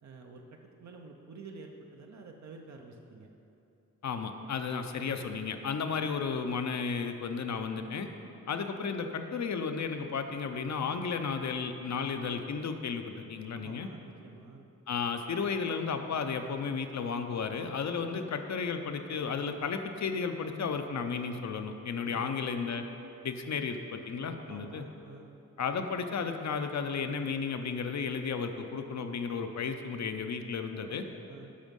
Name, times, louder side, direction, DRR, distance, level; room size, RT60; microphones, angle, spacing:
voice 1, 0.0-3.3 13.5-14.7 18.1-18.3 22.0-22.5 24.4-25.4 30.7-31.5, right 4 dB, 65° right, 2 dB, 0.7 m, -49 dB
voice 2, 4.0-8.1 8.5-13.9 14.9-22.8 23.2-24.8 25.6-31.0, left 5 dB, 65° left, 6 dB, 0.7 m, -33 dB
11.5 x 6.2 x 5.3 m, 2.8 s
wide cardioid pair, 175°, 31 cm